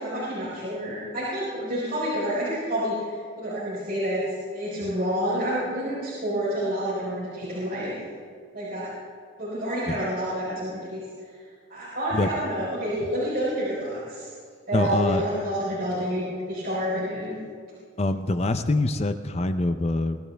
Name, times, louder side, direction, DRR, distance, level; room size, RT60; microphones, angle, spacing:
voice 1, 0.0-7.9 8.5-8.9 9.4-11.4 11.7-14.3 14.7-17.3, equal, 45° right, -9 dB, 4.2 m, -29 dB
voice 2, 14.7-15.2 18.0-20.2, left 2 dB, 30° left, 9 dB, 0.5 m, -24 dB
23.0 x 13.0 x 3.4 m, 2.1 s
head